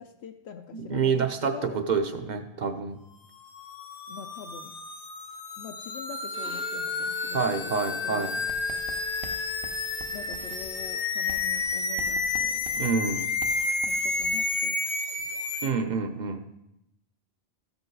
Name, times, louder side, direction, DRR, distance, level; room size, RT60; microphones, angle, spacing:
voice 1, 0.0-1.8 4.1-4.8 5.6-8.4 10.1-12.6 13.9-14.8, left 7 dB, 80° left, 5 dB, 0.8 m, -43 dB
voice 2, 0.7-3.0 7.3-8.3 12.8-13.3 15.6-16.5, right 5 dB, 50° right, 7 dB, 0.8 m, -28 dB
sound 1, 3.4-15.7, left 3 dB, 45° left, 0.8 m, -31 dB
Bowed string instrument, 6.2-11.5, equal, 10° left, 0.4 m, -47 dB
Writing, 8.5-14.5, right 4 dB, 80° right, 1.0 m, -46 dB
14.0 x 5.4 x 4.7 m, 0.86 s
omnidirectional pair, 1.1 m